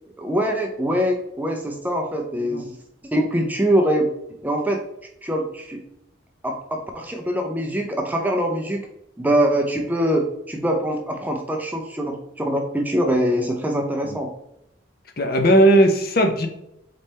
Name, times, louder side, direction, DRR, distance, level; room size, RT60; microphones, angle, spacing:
voice 1, 0.2-2.8 3.1-4.1 4.4-4.8 5.2-5.8 6.4-8.9 9.2-14.3, equal, 10° right, 2 dB, 0.5 m, -23 dB
voice 2, 2.4-2.7 14.0-14.2 15.2-16.5, right 1 dB, 50° left, 5 dB, 0.6 m, -17 dB
4.1 x 3.5 x 3.1 m, 0.80 s
head